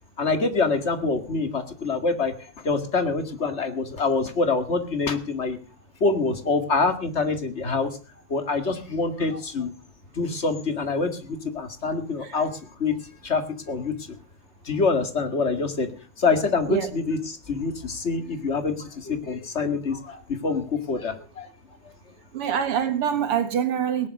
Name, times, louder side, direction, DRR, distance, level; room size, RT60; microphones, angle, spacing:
voice 1, 0.2-5.6 6.0-8.0 8.3-9.7 10.1-13.0 13.2-14.2 14.6-15.9 16.2-21.5, left 4 dB, 30° left, 8 dB, 2.3 m, -26 dB
voice 2, 22.3-24.1, right 8 dB, 85° right, 8 dB, 2.6 m, -24 dB
17.5 x 11.0 x 6.6 m, 0.37 s
omnidirectional pair, 2.4 m